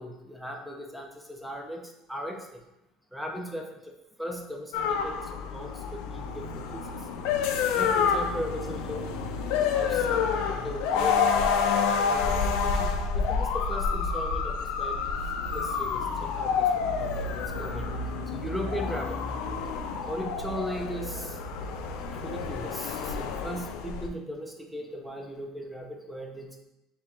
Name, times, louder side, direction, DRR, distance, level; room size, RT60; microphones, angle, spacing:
voice 1, 0.0-2.6 3.1-3.9 4.2-6.8 7.8-9.0 9.7-15.0 15.5-17.8 18.3-19.2 20.1-21.4 22.2-26.6, equal, ahead, 2 dB, 0.4 m, -38 dB
sound 1, 4.7-24.1, left 6 dB, 75° left, 0.4 m, -28 dB
3.6 x 2.9 x 4.2 m, 0.91 s
cardioid pair, 165°, 0 cm